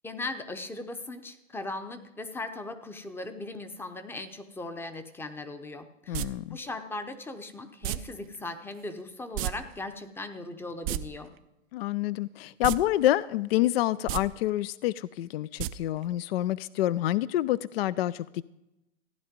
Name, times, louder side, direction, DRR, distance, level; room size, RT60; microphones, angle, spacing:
voice 1, 0.0-11.3, left 2 dB, 5° left, 9 dB, 0.7 m, -38 dB
voice 2, 6.1-6.6 11.7-18.5, left 14 dB, 50° left, 20 dB, 0.4 m, -27 dB
sound 1, 6.1-6.3 7.8-8.0 9.3-9.5 9.8-9.9 10.7-11.0 12.6-12.8 13.1-13.2 14.0-14.2 15.6-15.7 16.0-16.1, right 14 dB, 30° right, 0.4 m, -30 dB
15.0 x 10.0 x 5.2 m, 0.92 s
hypercardioid pair, 130°, 39 cm